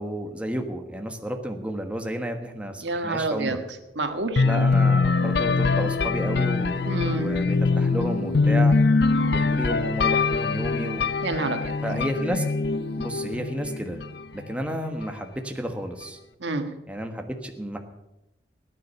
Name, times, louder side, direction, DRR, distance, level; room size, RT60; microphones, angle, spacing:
voice 1, 0.0-3.6 4.4-8.8 9.3-11.0 11.8-12.4 13.0-14.0 14.3-16.2 16.9-17.8, equal, 5° right, 4 dB, 1.3 m, -31 dB
voice 2, 2.8-3.6 3.9-4.4 6.9-7.3 11.2-11.7 16.4-16.7, right 2 dB, 85° right, 6 dB, 1.6 m, -28 dB
sound 1, 3.8-13.6, right 1 dB, 35° left, 3.4 m, -46 dB
sound 2, 4.4-14.2, left 4 dB, 65° left, 0.6 m, -23 dB
16.5 x 10.0 x 6.8 m, 0.93 s
head